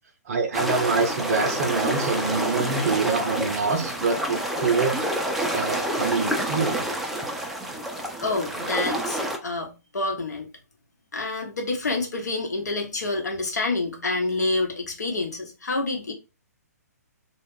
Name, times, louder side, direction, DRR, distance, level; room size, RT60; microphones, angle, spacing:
voice 1, 0.3-5.0 5.5-6.9, right 4 dB, 55° right, 0.5 m, -25 dB
sound 1, 0.5-9.4, right 1 dB, ahead, 0.3 m, -28 dB
voice 2, 8.2-10.5 11.1-16.1, left 2 dB, 75° left, 1.0 m, -28 dB
2.3 x 2.1 x 3.3 m
figure-of-eight pair, 130°, 9 cm